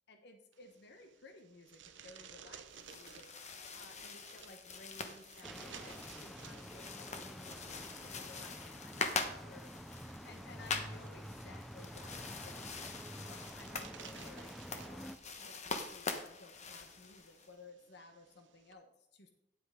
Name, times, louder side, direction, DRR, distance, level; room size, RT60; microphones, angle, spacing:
voice 1, 0.1-9.9 10.2-12.8 13.2-19.3, left 2 dB, 65° left, 5 dB, 1.0 m, -57 dB
sound 1, 0.5-18.7, right 7 dB, 75° right, 0.8 m, -58 dB
sound 2, 2.7-17.5, left 4 dB, 40° left, 1.1 m, -44 dB
sound 3, 5.4-15.2, equal, ahead, 0.5 m, -49 dB
9.8 x 8.6 x 3.7 m, 0.85 s
head